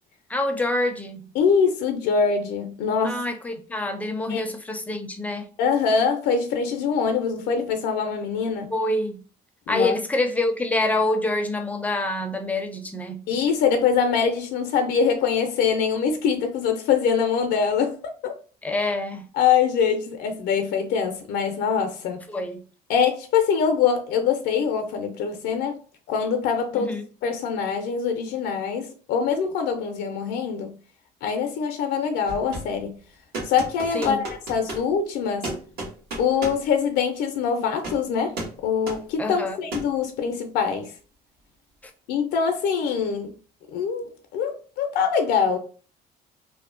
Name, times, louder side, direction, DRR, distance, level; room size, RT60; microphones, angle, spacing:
voice 1, 0.3-1.3 3.0-5.5 8.7-9.2 9.7-13.3 18.6-19.3 22.3-22.7 26.7-27.0 33.9-34.2 39.2-39.6 41.8-41.9, left 2 dB, 10° left, 0.4 m, -26 dB
voice 2, 1.4-3.2 4.3-4.4 5.6-8.7 9.7-10.0 13.3-18.3 19.4-22.2 22.9-25.8 26.1-26.9 27.2-30.7 31.2-33.0 33.4-35.5 36.2-40.9 42.1-43.3 43.7-45.6, left 6 dB, 80° left, 0.4 m, -24 dB
sound 1, 32.3-32.8 33.3-34.9 35.4-36.7 37.8-38.0 38.4-38.6 38.9-39.0 39.7-39.9, right 2 dB, 70° right, 1.2 m, -33 dB
2.6 x 2.1 x 2.4 m
cardioid pair, 110°, 17 cm